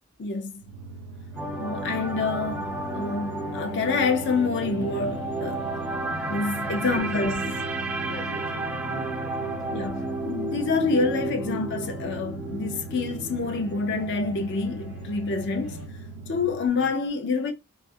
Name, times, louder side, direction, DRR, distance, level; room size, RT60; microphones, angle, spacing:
voice 1, 0.2-0.6 1.6-5.7 6.3-7.6 9.7-15.8 16.3-17.5, left 4 dB, 55° left, 0.5 m, -27 dB
sound 1, 0.6-16.7, right 2 dB, 85° right, 0.4 m, -41 dB
sound 2, 1.3-15.9, equal, 80° left, 1.2 m, -45 dB
sound 3, 1.4-15.5 15.8-16.0, right 2 dB, 10° right, 0.3 m, -33 dB
voice 2, 6.9-7.6 8.0-9.9 16.7-16.9, left 1 dB, 35° left, 1.0 m, -43 dB
2.4 x 2.0 x 2.5 m
head